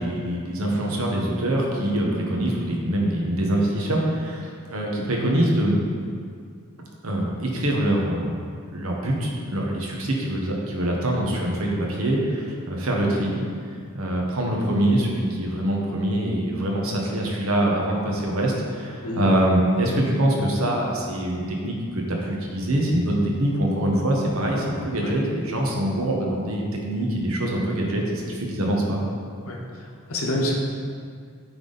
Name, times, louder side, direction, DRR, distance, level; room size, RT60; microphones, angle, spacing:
voice 1, 0.0-5.8 7.0-8.4 8.7-13.4 13.9-29.0, right 1 dB, 65° right, -1 dB, 1.1 m, -24 dB
voice 2, 29.4-30.6, left 1 dB, 70° left, -1 dB, 1.0 m, -28 dB
8.8 x 3.7 x 4.0 m, 2.1 s
head